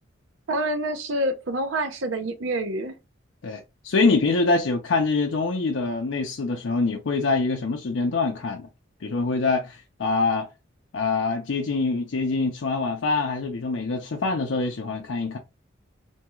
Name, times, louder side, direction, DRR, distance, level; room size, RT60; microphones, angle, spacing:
voice 1, 0.5-3.0, right 1 dB, 80° right, 0.6 m, -27 dB
voice 2, 3.4-8.7 9.0-10.5 10.9-15.4, left 3 dB, 70° left, 0.5 m, -25 dB
2.6 x 2.3 x 3.0 m
head